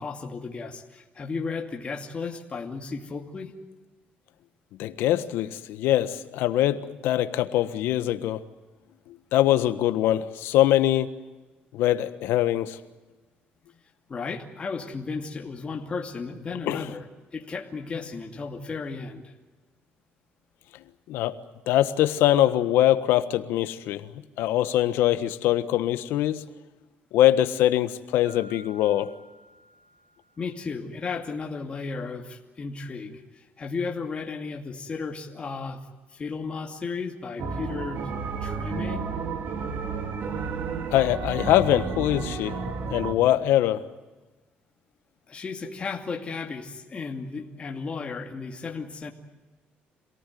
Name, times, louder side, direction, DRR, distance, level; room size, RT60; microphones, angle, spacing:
voice 1, 0.0-3.5 14.1-17.1 17.3-19.3 30.4-35.8 36.1-38.1 38.4-39.1 45.3-49.1, left 4 dB, 30° left, 2 dB, 2.5 m, -34 dB
voice 2, 4.8-8.4 9.1-11.1 11.7-12.8 16.7-16.9 21.1-21.4 21.7-24.1 24.4-26.4 27.1-29.1 40.9-43.8, left 13 dB, 85° left, 11 dB, 1.4 m, -23 dB
Mallet percussion, 28.3-30.8, right 1 dB, 30° right, 6.1 m, -53 dB
sound 1, 37.4-43.1, right 5 dB, 60° right, 2.9 m, -32 dB
27.0 x 18.0 x 9.4 m, 1.2 s
cardioid pair, 120°, 4 cm